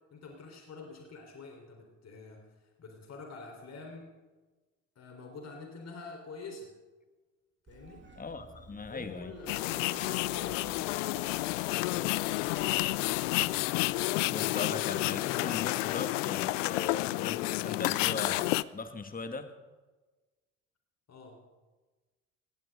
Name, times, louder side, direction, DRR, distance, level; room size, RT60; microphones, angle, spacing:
voice 1, 0.1-4.1 5.0-6.7 7.7-8.1 8.9-12.2 21.1-21.4, left 3 dB, 40° left, 2 dB, 3.9 m, -47 dB
Meow, 7.7-14.0, right 4 dB, 30° right, 2.5 m, -53 dB
voice 2, 8.2-9.3 14.3-19.5, left 4 dB, 20° left, 8 dB, 1.9 m, -39 dB
sound 1, 9.5-18.6, left 20 dB, 75° left, 0.5 m, -30 dB
19.0 x 17.5 x 3.7 m, 1.2 s
hypercardioid pair, 55°, 38 cm